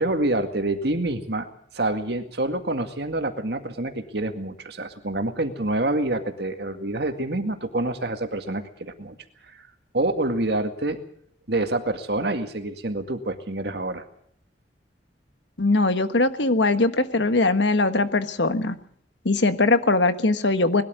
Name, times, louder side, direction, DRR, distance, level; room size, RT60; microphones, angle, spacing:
voice 1, 0.0-1.5 1.7-9.1 9.5-9.7 9.9-11.0 11.5-14.0, right 2 dB, 60° right, 6 dB, 2.1 m, -27 dB
voice 2, 15.6-18.8 19.2-20.8, left 2 dB, 75° left, 10 dB, 1.4 m, -21 dB
20.5 x 13.0 x 9.6 m, 0.66 s
head